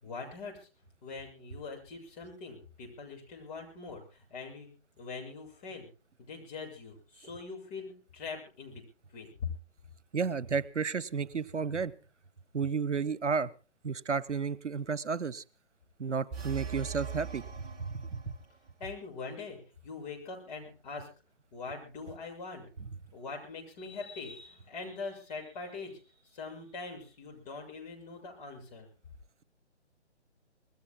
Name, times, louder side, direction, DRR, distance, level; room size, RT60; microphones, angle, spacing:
voice 1, 0.0-0.7 1.0-5.9 6.3-8.8 9.1-9.5 18.8-21.1 21.5-22.7 23.1-28.9, left 4 dB, 35° left, 0 dB, 6.9 m, -43 dB
voice 2, 10.1-11.9 12.5-13.5 13.8-15.4 16.0-17.4 17.9-18.2, right 5 dB, 85° right, 18 dB, 0.9 m, -32 dB
sound 1, 16.3-18.6, right 6 dB, 15° right, 1.6 m, -41 dB
26.0 x 20.0 x 2.2 m, 0.34 s
figure-of-eight pair, 140°, 35 cm